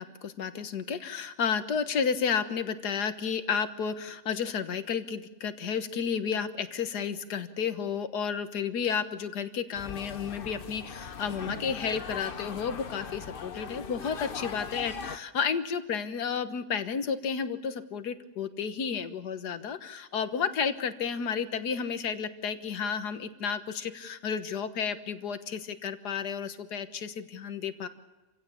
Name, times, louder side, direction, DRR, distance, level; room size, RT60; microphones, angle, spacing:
voice 1, 0.0-27.9, left 6 dB, 75° left, 10 dB, 1.8 m, -32 dB
sound 1, 9.7-15.2, left 6 dB, 40° left, 0.9 m, -40 dB
27.5 x 16.5 x 8.6 m, 1.2 s
omnidirectional pair, 1.8 m